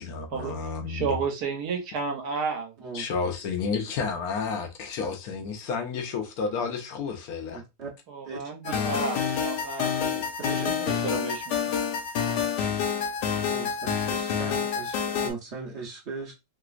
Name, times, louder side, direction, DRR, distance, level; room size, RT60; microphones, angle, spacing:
voice 1, 0.0-1.2 2.9-7.6, left 5 dB, 75° left, 1.1 m, -31 dB
voice 2, 0.9-2.7 8.1-9.9 10.4-11.8, right 5 dB, 70° right, 1.3 m, -32 dB
voice 3, 7.5-7.9 8.2-8.7 10.0-10.7 13.5-13.8 14.1-16.3, right 4 dB, 55° right, 0.9 m, -39 dB
sound 1, 8.7-15.3, left 7 dB, 90° left, 1.2 m, -28 dB
3.3 x 2.9 x 2.3 m
omnidirectional pair, 1.8 m